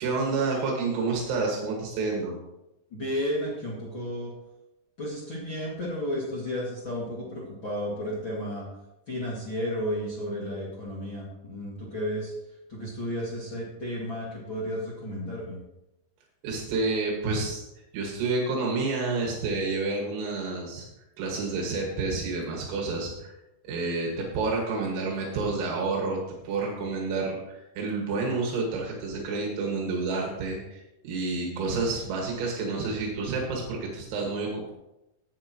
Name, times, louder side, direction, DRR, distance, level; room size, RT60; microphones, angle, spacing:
voice 1, 0.0-2.4 16.4-17.7 17.9-20.9 21.2-23.4 23.6-26.2 26.4-34.7, right 3 dB, 80° right, -1 dB, 4.5 m, -29 dB
voice 2, 2.9-4.3 5.0-8.6 9.1-15.6, equal, 45° left, -6 dB, 1.6 m, -33 dB
16.5 x 9.5 x 3.0 m, 0.93 s
omnidirectional pair, 6.0 m